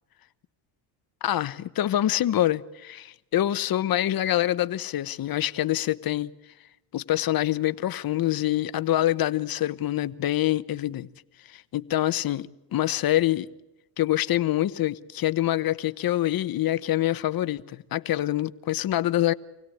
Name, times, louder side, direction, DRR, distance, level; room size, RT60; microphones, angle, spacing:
voice 1, 1.2-6.3 6.9-11.1 11.5-13.5 14.0-19.3, left 13 dB, 50° left, 1.0 m, -25 dB
26.0 x 17.5 x 8.6 m
cardioid pair, 95°, 45 cm